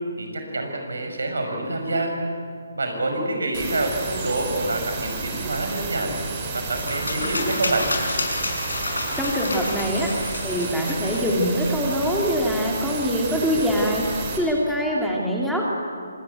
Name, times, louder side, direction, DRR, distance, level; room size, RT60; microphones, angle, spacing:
voice 1, 0.2-2.2 2.7-6.2 6.5-7.9, right 2 dB, 75° right, 4 dB, 5.6 m, -27 dB
sound 1, 3.5-14.4, right 4 dB, 30° right, 4.6 m, -31 dB
sound 2, 6.8-12.0, left 2 dB, 80° left, 5.8 m, -30 dB
voice 2, 9.2-10.1 10.4-14.0 14.3-15.7, equal, ahead, -3 dB, 3.0 m, -23 dB
25.0 x 19.0 x 8.2 m, 2.2 s
figure-of-eight pair, 145°, 0 cm